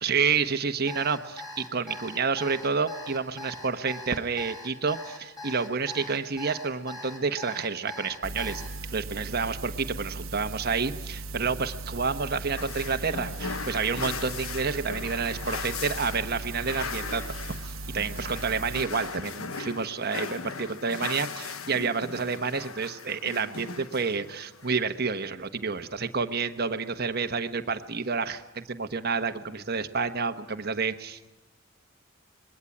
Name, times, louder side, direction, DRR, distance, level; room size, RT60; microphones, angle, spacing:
voice 1, 0.0-8.6 8.9-31.3, right 5 dB, 50° right, 8 dB, 1.1 m, -29 dB
Alarm, 0.9-8.7, left 1 dB, 20° left, 5.8 m, -41 dB
sound 1, 8.2-18.9, right 3 dB, 75° right, 1.2 m, -38 dB
sound 2, 12.6-24.8, left 5 dB, 85° left, 1.3 m, -38 dB
26.5 x 21.5 x 9.8 m, 0.98 s
head